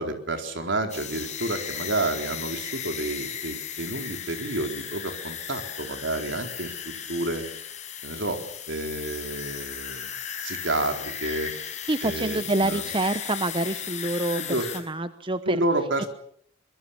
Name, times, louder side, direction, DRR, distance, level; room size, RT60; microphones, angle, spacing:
voice 1, 0.0-6.8 7.1-7.4 8.0-8.4 8.7-10.1 10.4-11.5 12.0-12.8 14.4-14.7 15.4-16.1, right 2 dB, 70° right, 5 dB, 4.2 m, -29 dB
sound 1, 0.9-14.8, left 8 dB, 40° left, 5.7 m, -36 dB
voice 2, 11.9-14.4 14.7-15.6 16.0-16.1, right 2 dB, 25° right, 11 dB, 1.0 m, -27 dB
24.5 x 22.5 x 7.3 m, 0.64 s
head